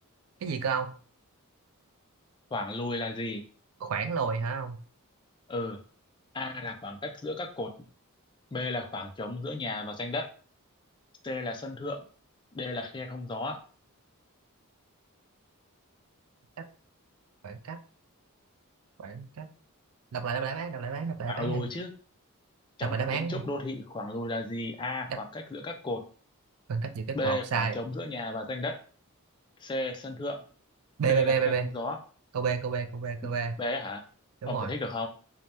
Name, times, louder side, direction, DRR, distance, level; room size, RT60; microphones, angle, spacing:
voice 1, 0.4-0.9 3.8-4.8 16.6-16.7 17.4-17.8 19.0-19.5 20.1-21.7 22.8-23.4 25.1-25.2 26.7-27.8 31.0-31.7 32.3-33.6 34.4-34.7, right 5 dB, 65° right, 8 dB, 0.4 m, -30 dB
voice 2, 2.5-3.4 5.5-5.8 6.3-7.7 8.5-10.3 11.2-12.0 12.5-13.6 21.3-21.9 22.8-26.0 27.1-28.8 29.6-30.4 31.1-32.0 33.6-34.0 34.5-35.1, left 2 dB, 20° left, 4 dB, 0.3 m, -34 dB
2.7 x 2.0 x 3.3 m, 0.41 s
head